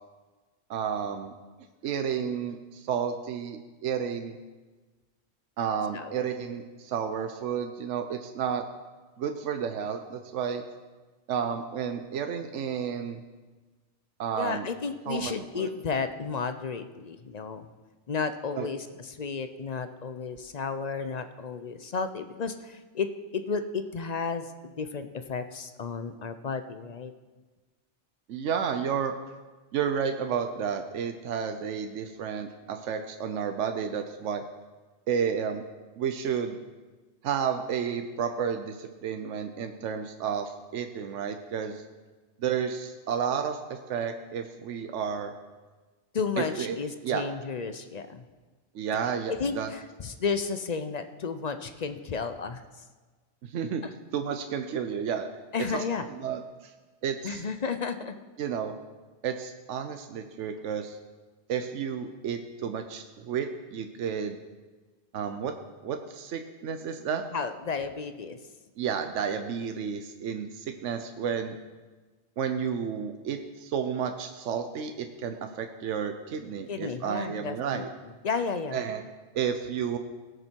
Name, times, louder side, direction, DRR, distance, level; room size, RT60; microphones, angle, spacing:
voice 1, 0.7-1.3 1.8-4.4 5.6-8.6 9.2-10.6 11.3-13.2 14.2-14.7 15.1-15.7 18.5-18.7 28.3-29.1 29.7-34.4 35.1-35.6 36.0-36.6 37.2-41.8 42.4-45.3 46.4-46.8 47.0-47.3 48.7-49.7 53.4-53.8 54.1-55.3 55.7-55.8 56.1-56.7 57.0-57.4 58.4-58.7 59.2-61.0 61.5-64.4 65.1-65.5 65.8-67.2 68.8-71.6 72.4-77.9 78.7-79.0 79.3-80.0, right 7 dB, 85° right, 6 dB, 1.0 m, -31 dB
voice 2, 14.4-17.7 18.1-23.1 23.3-27.1 46.1-48.2 49.3-52.6 53.8-53.9 55.5-56.0 57.2-58.2 67.3-68.4 76.7-77.9 78.2-78.8, left 5 dB, 45° left, 9 dB, 0.6 m, -33 dB
18.0 x 6.7 x 4.5 m, 1.3 s
omnidirectional pair, 1.2 m